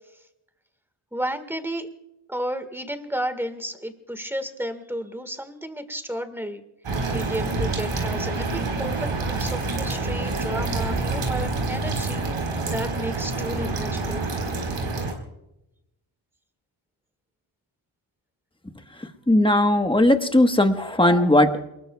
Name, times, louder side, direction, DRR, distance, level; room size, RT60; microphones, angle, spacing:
voice 1, 1.1-1.9 2.3-6.6 7.1-14.2, right 1 dB, 5° right, 8 dB, 1.6 m, -32 dB
sound 1, 6.8-15.1, right 3 dB, 85° right, 4.4 m, -27 dB
voice 2, 19.3-21.6, left 1 dB, 10° left, 6 dB, 1.3 m, -18 dB
28.5 x 20.5 x 2.3 m, 0.90 s
wide cardioid pair, 120°, 48 cm